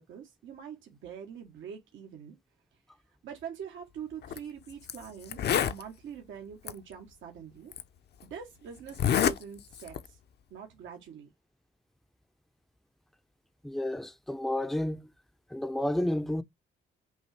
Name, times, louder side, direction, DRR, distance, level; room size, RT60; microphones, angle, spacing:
voice 1, 0.0-2.4 3.2-7.7 8.2-10.2 10.5-11.3, right 7 dB, 75° right, 1.2 m, -44 dB
Zipper (clothing), 4.2-4.4 4.9-5.0 5.2-5.8 6.7-6.8 7.7-7.8 8.9-9.4 9.7-10.1, left 9 dB, 55° left, 0.7 m, -26 dB
voice 2, 13.6-15.1 15.5-16.4, left 1 dB, ahead, 0.5 m, -31 dB
5.2 x 2.7 x 3.2 m
cardioid pair, 90°, 20 cm